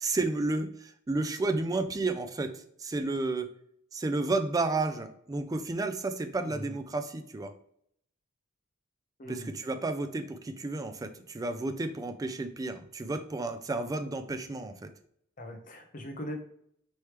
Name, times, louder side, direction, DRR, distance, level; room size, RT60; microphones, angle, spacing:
voice 1, 0.0-3.5 3.9-7.5 9.3-14.9, right 3 dB, 15° right, 8 dB, 0.3 m, -32 dB
voice 2, 9.2-9.5 15.4-16.4, equal, 40° left, 4 dB, 0.7 m, -40 dB
4.5 x 3.3 x 3.1 m, 0.68 s
head